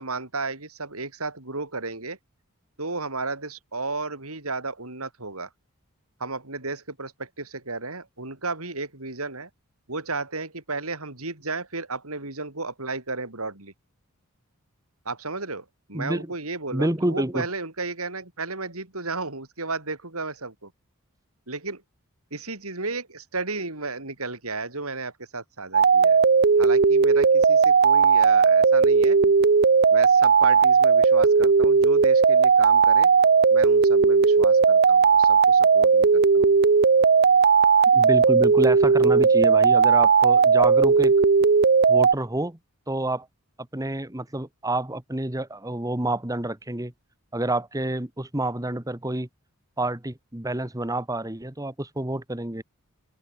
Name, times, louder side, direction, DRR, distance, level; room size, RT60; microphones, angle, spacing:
voice 1, 0.0-2.2 2.8-5.5 6.2-9.5 9.9-13.7 15.1-20.7 21.5-21.8 22.3-26.2 26.6-29.3 29.9-33.1 33.5-36.6, right 3 dB, 75° right, 5.2 m, -33 dB
voice 2, 15.9-16.3 16.7-17.5 37.9-41.2 41.9-42.6 42.9-43.3 43.7-46.9 47.3-49.3 49.8-52.6, right 1 dB, 15° right, 1.4 m, -28 dB
sound 1, 25.7-42.1, right 5 dB, 45° right, 0.6 m, -17 dB
head